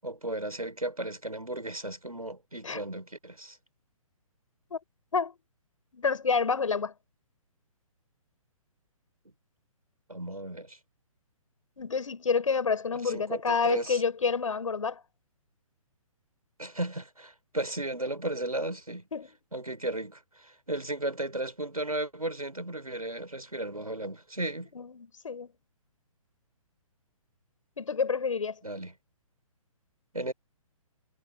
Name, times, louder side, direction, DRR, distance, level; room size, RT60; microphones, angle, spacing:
voice 1, 0.0-3.6 10.1-10.8 13.0-14.0 16.6-19.0 19.5-24.7 28.6-28.9 30.1-30.3, right 1 dB, 85° right, 6.1 m, -35 dB
voice 2, 5.9-6.9 11.8-15.0 19.1-19.3 24.7-25.5 27.8-28.6, left 5 dB, 65° left, 7.6 m, -28 dB
figure-of-eight pair, 130°, 18 cm